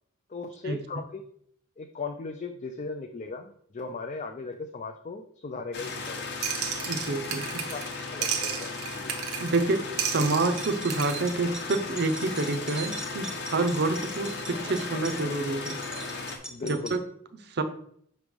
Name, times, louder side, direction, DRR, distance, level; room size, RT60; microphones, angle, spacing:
voice 1, 0.3-1.2 1.8-6.3 7.7-7.8 8.1-9.1 16.5-17.0, left 3 dB, 35° left, 6 dB, 0.4 m, -37 dB
sound 1, 5.7-16.4, left 3 dB, 50° left, 0.9 m, -36 dB
sound 2, 6.4-8.0 8.2-9.7 10.0-11.3, right 8 dB, 80° right, 0.8 m, -33 dB
voice 2, 6.9-7.7 9.4-15.8 16.6-17.0 17.3-17.6, right 3 dB, 50° right, 8 dB, 0.6 m, -28 dB
sound 3, 10.5-17.0, right 2 dB, 5° right, 0.7 m, -41 dB
6.0 x 3.2 x 5.1 m, 0.66 s
head